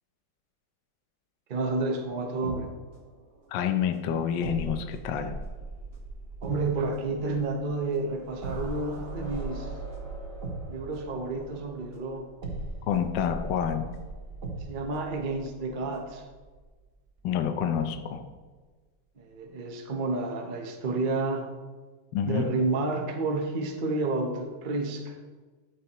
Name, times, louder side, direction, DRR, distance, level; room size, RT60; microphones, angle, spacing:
voice 1, 1.5-2.7 6.4-9.7 10.7-12.3 14.6-16.2 19.2-21.5 22.2-25.2, right 3 dB, 55° right, 3 dB, 0.5 m, -30 dB
sound 1, 1.6-3.6 4.4-16.9 17.2-17.4, right 2 dB, 35° right, 1.2 m, -39 dB
voice 2, 3.5-5.4 12.9-13.9 17.2-18.2 22.1-22.5, left 8 dB, 70° left, 7 dB, 1.2 m, -28 dB
12.5 x 6.7 x 3.0 m, 1.3 s
omnidirectional pair, 2.4 m